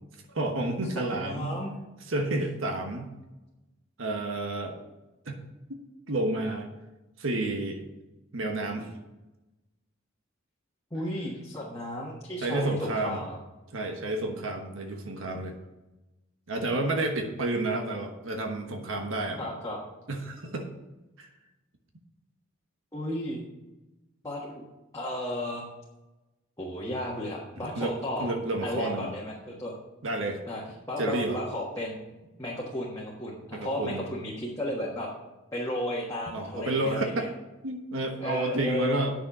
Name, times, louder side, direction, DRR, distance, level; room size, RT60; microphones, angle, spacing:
voice 1, 0.3-1.6 2.1-3.1 4.0-4.8 5.2-5.3 6.1-6.7 7.2-7.8 8.3-8.9 12.4-13.2 13.7-15.6 16.5-19.5 20.1-20.7 21.2-21.3 27.8-27.9 28.2-29.1 30.0-30.4 31.0-31.4 33.5-34.0 36.3-37.3 37.6-39.1, right 2 dB, 75° right, 3 dB, 1.2 m, -30 dB
voice 2, 1.1-1.7 10.9-13.4 19.4-19.8 22.9-23.4 24.2-24.6 24.9-25.6 26.6-28.3 28.6-29.8 30.5-30.6 30.9-32.0 32.4-35.1 35.5-37.3 38.2-39.0, left 1 dB, 15° left, -6 dB, 1.5 m, -33 dB
9.5 x 6.7 x 6.1 m, 1.0 s
head